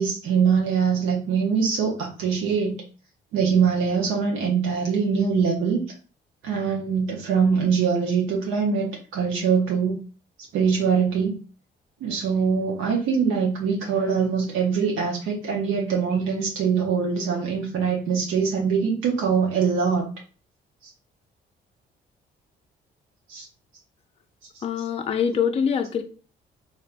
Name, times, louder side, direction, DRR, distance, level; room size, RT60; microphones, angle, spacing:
voice 1, 0.0-2.8 3.3-5.8 6.4-8.9 9.1-9.9 10.5-11.4 12.0-20.0 23.3-23.5, right 6 dB, 85° right, -1 dB, 0.7 m, -23 dB
voice 2, 24.6-26.0, left 7 dB, 30° left, 6 dB, 0.4 m, -24 dB
3.2 x 2.6 x 2.4 m, 0.37 s
cardioid pair, 90°, 20 cm